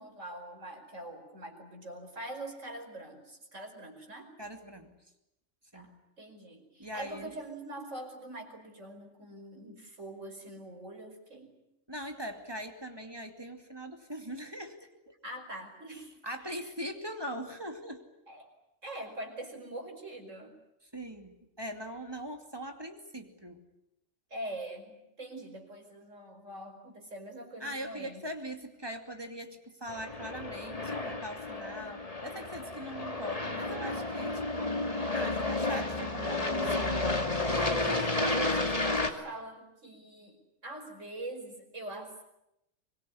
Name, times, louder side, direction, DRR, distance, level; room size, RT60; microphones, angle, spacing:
voice 1, 0.0-4.3 5.7-5.9 6.2-11.5 15.2-16.1 18.3-18.5 18.8-20.5 24.3-28.2 37.3-40.4 40.6-42.2, right 1 dB, 80° right, 3 dB, 5.5 m, -43 dB
voice 2, 4.4-4.9 5.7-5.9 6.8-7.3 11.9-15.1 15.9-18.0 20.9-23.6 27.6-34.7 35.1-37.2, equal, 20° right, 5 dB, 2.7 m, -41 dB
Aircraft, 29.9-39.1, left 2 dB, 30° left, 2.4 m, -32 dB
24.5 x 22.5 x 9.9 m, 0.84 s
omnidirectional pair, 1.3 m